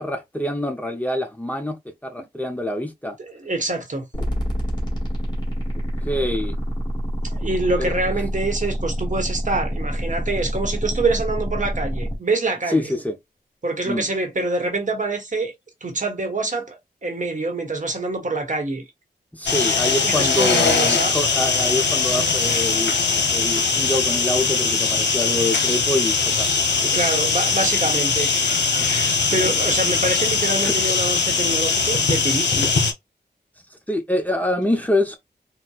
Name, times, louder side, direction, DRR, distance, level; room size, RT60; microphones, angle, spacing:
voice 1, 0.0-1.8 2.0-3.2 6.1-6.6 7.8-7.9 12.7-13.2 13.8-14.1 19.3-22.9 23.3-26.5 26.8-27.0 29.4-29.5 30.6-30.7 33.7-35.2, left 1 dB, 10° left, 0.7 m, -25 dB
voice 2, 3.3-4.0 7.2-12.9 13.6-15.5 15.8-18.8 20.0-21.1 26.9-32.7, right 2 dB, 45° right, 1.0 m, -26 dB
sound 1, 4.1-12.2, equal, 25° left, 1.5 m, -27 dB
sound 2, 19.5-32.9, left 4 dB, 85° left, 0.7 m, -21 dB
4.1 x 2.1 x 2.3 m
wide cardioid pair, 70°, 18 cm